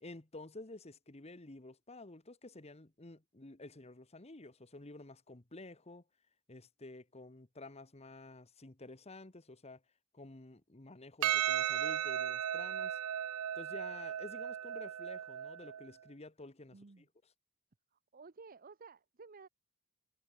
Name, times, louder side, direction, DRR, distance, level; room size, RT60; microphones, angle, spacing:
voice 1, 0.0-6.0 6.5-9.8 10.1-13.0 13.5-17.0, left 2 dB, 30° left, 1.3 m, -51 dB
Percussion, 11.2-15.8, right 10 dB, 85° right, 0.5 m, -36 dB
voice 2, 16.7-17.1 17.9-19.5, right 4 dB, 40° right, 0.7 m, -54 dB
head